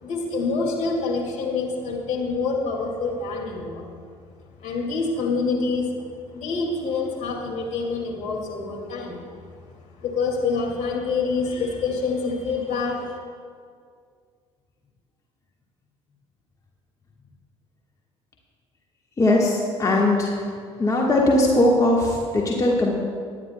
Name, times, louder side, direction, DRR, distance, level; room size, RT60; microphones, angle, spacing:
voice 1, 0.0-3.9 4.6-6.0 6.3-9.4 10.0-13.2, left 4 dB, 50° left, -1 dB, 2.3 m, -26 dB
voice 2, 19.2-20.3 20.8-22.9, left 1 dB, 20° left, -2 dB, 1.5 m, -19 dB
20.5 x 9.6 x 2.2 m, 2.1 s
figure-of-eight pair, 55°, 15 cm